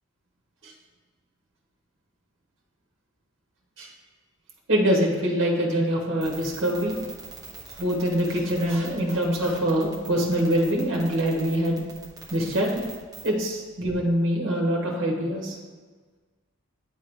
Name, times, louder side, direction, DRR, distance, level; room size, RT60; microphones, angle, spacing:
voice 1, 4.7-6.9 7.7-11.8 12.3-12.8 13.2-15.6, equal, 60° right, -1 dB, 1.3 m, -24 dB
sound 1, 6.2-13.3, right 4 dB, 20° right, 1.1 m, -42 dB
9.2 x 3.8 x 3.4 m, 1.4 s
head